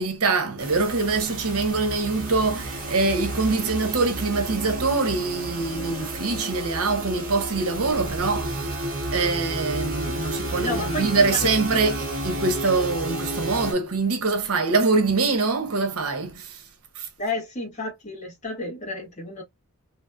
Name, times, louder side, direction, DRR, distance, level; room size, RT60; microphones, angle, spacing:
voice 1, 0.0-8.6 9.1-16.6 17.0-17.1, right 3 dB, 80° right, 0.9 m, -24 dB
sound 1, 0.6-13.7, right 1 dB, 40° right, 1.2 m, -31 dB
voice 2, 10.6-11.9 17.2-19.4, left 2 dB, 30° left, 1.6 m, -31 dB
3.2 x 2.9 x 2.2 m
head